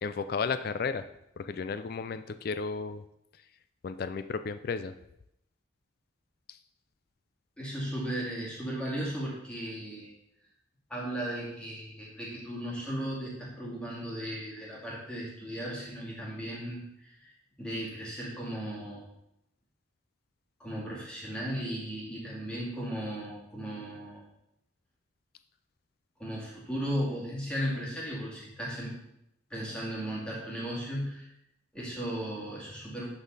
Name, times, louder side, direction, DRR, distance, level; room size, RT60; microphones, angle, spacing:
voice 1, 0.0-1.0 1.4-3.0 3.8-4.9, left 5 dB, 50° left, 12 dB, 0.3 m, -33 dB
voice 2, 7.6-10.1 10.9-17.3 17.6-19.1 20.6-24.2 26.2-28.9 29.5-31.3 31.7-33.1, equal, 5° left, -6 dB, 2.2 m, -36 dB
11.0 x 4.1 x 4.0 m, 0.81 s
head